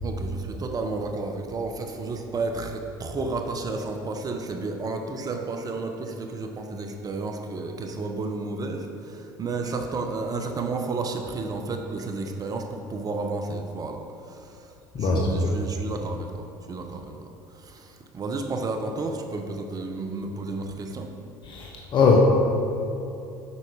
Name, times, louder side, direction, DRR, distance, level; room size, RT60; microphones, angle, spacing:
voice 1, 0.0-14.0 14.3-14.6 15.0-17.2 17.6-21.1, right 3 dB, 35° right, 4 dB, 0.9 m, -32 dB
voice 2, 14.9-15.5 21.5-22.2, left 5 dB, 50° left, 0 dB, 1.1 m, -21 dB
8.5 x 5.8 x 4.9 m, 2.9 s
hypercardioid pair, 70°, 10 cm